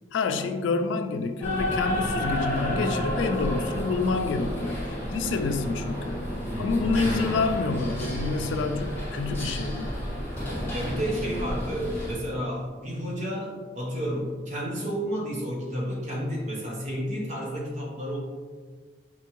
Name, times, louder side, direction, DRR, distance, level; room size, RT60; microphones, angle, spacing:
voice 1, 0.1-6.2 6.6-9.9, left 3 dB, 90° left, 7 dB, 0.3 m, -28 dB
sound 1, 1.4-12.1, left 1 dB, 15° left, 1.3 m, -31 dB
voice 2, 10.7-18.2, equal, 40° right, -3 dB, 0.9 m, -31 dB
4.4 x 3.4 x 2.9 m, 1.5 s
head